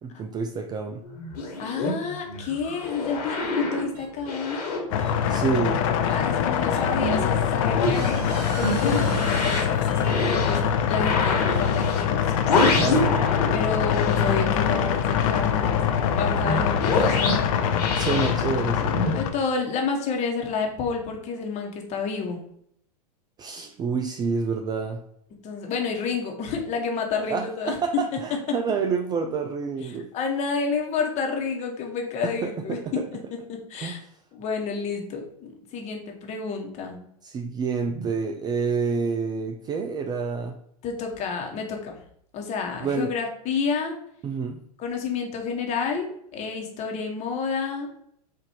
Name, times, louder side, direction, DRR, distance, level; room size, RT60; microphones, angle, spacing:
voice 1, 0.0-1.0 5.3-5.8 12.8-13.3 18.0-19.0 23.4-25.0 27.3-30.1 32.2-33.1 33.8-34.0 37.2-40.6 42.8-43.1 44.2-44.6, right 5 dB, 20° right, 6 dB, 0.3 m, -28 dB
sound 1, 1.0-5.7 6.0-13.6 13.9-19.1, left 2 dB, 75° left, 1.5 m, -28 dB
voice 2, 1.6-4.7 6.1-12.2 13.5-15.8 16.0-17.5 19.1-22.4 25.4-27.8 28.1-28.2 29.8-34.0 34.3-37.0 40.8-42.0 42.3-44.0 44.8-47.9, left 5 dB, 35° left, 2 dB, 1.1 m, -30 dB
sound 2, 3.4-3.5 3.9-4.1 5.0-5.1 6.0-6.2 6.7-6.8 7.8-10.4, right 3 dB, 55° right, 1.6 m, -40 dB
sound 3, 4.9-19.3, left 8 dB, 55° left, 0.6 m, -24 dB
4.4 x 2.6 x 4.3 m, 0.69 s
hypercardioid pair, 110°, 20 cm